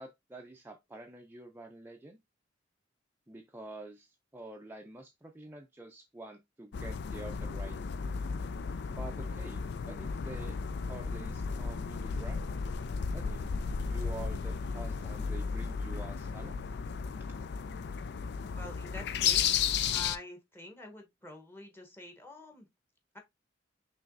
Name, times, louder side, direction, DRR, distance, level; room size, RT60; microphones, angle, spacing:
voice 1, 0.0-2.2 3.3-7.8 8.9-9.6 9.9-10.6 10.9-12.4 13.1-13.5 13.9-16.6, right 2 dB, 10° right, 0.5 m, -47 dB
sound 1, 6.7-20.2, left 6 dB, 60° left, 0.4 m, -34 dB
voice 2, 18.5-22.7 23.1-23.2, left 2 dB, 10° left, 1.1 m, -47 dB
5.7 x 3.1 x 2.6 m
head